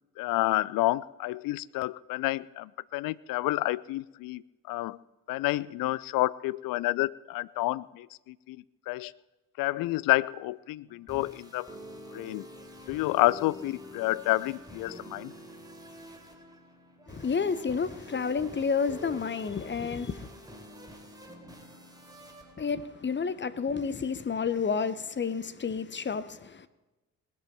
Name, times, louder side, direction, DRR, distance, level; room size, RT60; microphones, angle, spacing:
voice 1, 0.2-5.0 5.3-8.6 8.9-9.1 9.6-11.7 12.1-12.5 12.9-15.3, left 18 dB, 50° left, 0.5 m, -29 dB
sound 1, 10.9-23.7, equal, 10° right, 3.2 m, -48 dB
voice 2, 17.1-20.3 22.6-26.7, left 5 dB, 25° left, 0.9 m, -30 dB
19.5 x 13.0 x 4.5 m
figure-of-eight pair, 40°, 45 cm